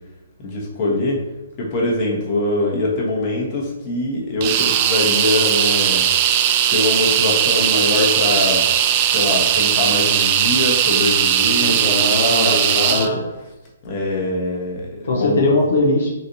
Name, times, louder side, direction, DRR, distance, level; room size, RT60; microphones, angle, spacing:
voice 1, 0.4-1.2 1.6-6.1 6.7-8.7 9.1-11.9 12.4-13.2 13.8-15.4, left 2 dB, 35° left, -2 dB, 1.0 m, -23 dB
sound 1, 4.4-13.1, right 10 dB, 35° right, 0.3 m, -18 dB
voice 2, 11.6-13.2 15.1-16.1, left 2 dB, 65° left, -1 dB, 0.6 m, -20 dB
4.1 x 2.5 x 2.7 m, 0.99 s
figure-of-eight pair, 130°, 0 cm